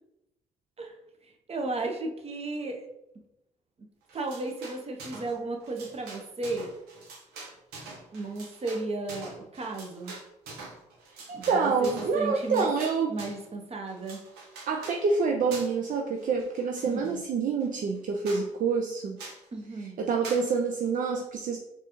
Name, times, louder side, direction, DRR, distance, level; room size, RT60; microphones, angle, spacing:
voice 1, 1.2-2.8 4.1-6.7 8.1-10.1 11.3-12.7 13.1-14.2 16.9-17.2 19.5-20.0, right 2 dB, 40° right, 3 dB, 0.8 m, -34 dB
sound 1, 4.1-5.3 5.6-13.5 13.9-15.0 15.5-15.9 16.2-17.1 17.6-17.7 17.9-18.0 18.2-18.5 19.2-19.4 20.2-20.5, right 3 dB, 80° right, 0.9 m, -44 dB
voice 2, 11.1-13.2 14.7-19.2 20.0-21.6, right 5 dB, 55° right, 2 dB, 0.4 m, -27 dB
4.4 x 2.5 x 3.0 m, 0.90 s
supercardioid pair, 55°, 16 cm